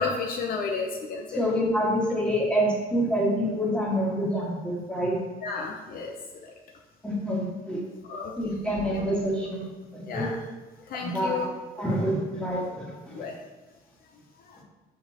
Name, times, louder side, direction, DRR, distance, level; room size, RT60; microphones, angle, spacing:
voice 1, 0.0-1.4 5.4-6.1 8.0-8.3 8.9-9.0 10.1-10.4 10.9-11.5 13.1-13.3 14.5-14.6, left 4 dB, 60° left, 1 dB, 0.7 m, -31 dB
voice 2, 1.3-5.2 7.0-7.8 8.4-9.6 9.9-10.3 11.0-11.5 11.8-13.3, equal, 5° left, -4 dB, 1.8 m, -27 dB
7.0 x 5.1 x 3.0 m, 1.3 s
cardioid pair, 110°, 17 cm